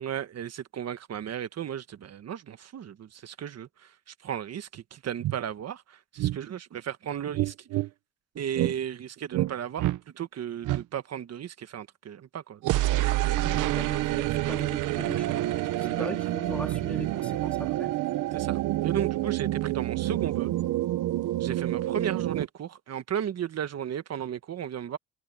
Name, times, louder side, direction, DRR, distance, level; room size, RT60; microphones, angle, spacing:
voice 1, 0.0-7.8 8.3-12.6 15.8-16.1 18.3-20.5 21.4-25.0, right 9 dB, 55° right, 1.5 m, -35 dB
sound 1, 4.8-4.9 5.2-5.4 6.2-6.4 7.3-7.9 8.5-8.7 9.3-9.5 9.8-10.0 10.6-10.8 12.6-22.5, right 15 dB, 85° right, 1.0 m, -28 dB
voice 2, 13.4-15.5 15.8-18.0, left 1 dB, 5° left, 3.1 m, -40 dB
cardioid pair, 90°, 30 cm